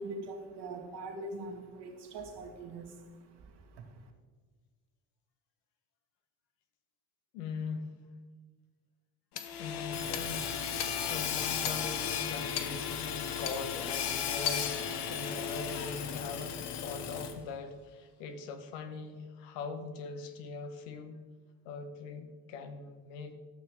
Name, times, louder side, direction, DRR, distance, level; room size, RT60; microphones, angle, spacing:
voice 1, 0.0-4.1, right 2 dB, 55° right, 3 dB, 1.9 m, -43 dB
voice 2, 7.3-7.9 9.6-10.5 11.1-14.8 15.1-21.2 21.6-23.3, left 4 dB, 85° left, 7 dB, 1.2 m, -41 dB
Hammer / Sawing, 9.4-17.5, left 7 dB, 55° left, 1.1 m, -35 dB
12.5 x 6.2 x 4.7 m, 1.4 s
supercardioid pair, 75°, 48 cm